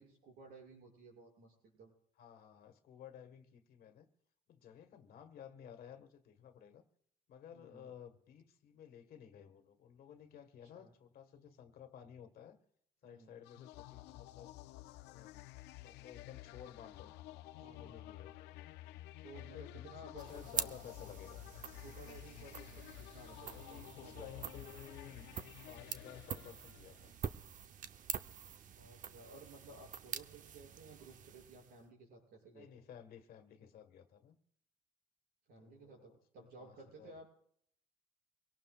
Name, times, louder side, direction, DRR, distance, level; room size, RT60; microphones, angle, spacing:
voice 1, 0.0-1.9 7.5-8.0 10.6-10.9 13.0-13.4 17.6-18.1 19.2-20.7 21.7-24.7 28.7-32.7 35.5-37.3, right 2 dB, 70° right, 6.2 m, -56 dB
voice 2, 2.2-4.1 4.5-6.8 7.3-12.6 13.0-14.5 15.1-15.5 15.8-17.1 17.5-18.7 19.3-21.4 23.5-25.3 25.7-27.3 32.5-34.4 35.6-37.3, left 8 dB, 60° left, 1.5 m, -55 dB
sound 1, 13.4-27.1, left 15 dB, 90° left, 0.4 m, -52 dB
sound 2, 20.2-31.9, right 8 dB, 50° right, 0.7 m, -46 dB
24.0 x 17.5 x 2.4 m
cardioid pair, 110°, 17 cm